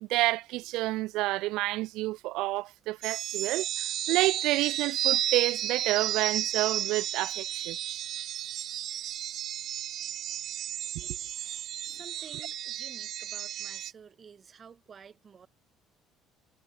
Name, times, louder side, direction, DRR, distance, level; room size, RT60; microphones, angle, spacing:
voice 1, 0.0-7.8 10.9-11.1, right 19 dB, 70° right, 0.5 m, -29 dB
sound 1, 3.0-13.9, right 12 dB, 45° right, 1.6 m, -33 dB
voice 2, 11.8-15.5, right 7 dB, 25° right, 4.1 m, -51 dB
cardioid pair, 180°, 0 cm